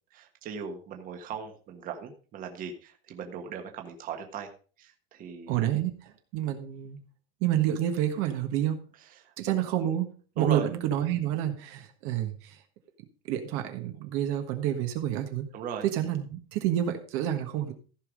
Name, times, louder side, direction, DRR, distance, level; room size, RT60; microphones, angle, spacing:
voice 1, 0.1-4.5 4.8-5.7 9.2-9.6 10.4-10.7 15.5-15.8, right 6 dB, 30° right, 4 dB, 1.5 m, -38 dB
voice 2, 5.5-7.0 7.4-8.8 9.4-10.1 10.3-12.6 13.2-15.5 15.8-17.7, right 11 dB, 45° right, 5 dB, 1.4 m, -29 dB
15.0 x 5.7 x 5.1 m, 0.38 s
supercardioid pair, 165°, 30 cm